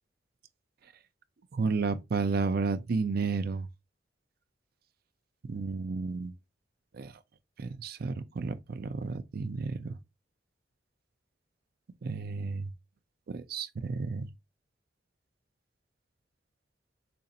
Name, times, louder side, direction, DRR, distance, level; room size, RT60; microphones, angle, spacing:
voice 1, 1.5-3.7 5.4-6.3 6.9-7.1 7.6-10.0 12.0-12.7 13.3-14.3, right 4 dB, 55° right, 0.4 m, -32 dB
6.8 x 2.5 x 2.7 m
head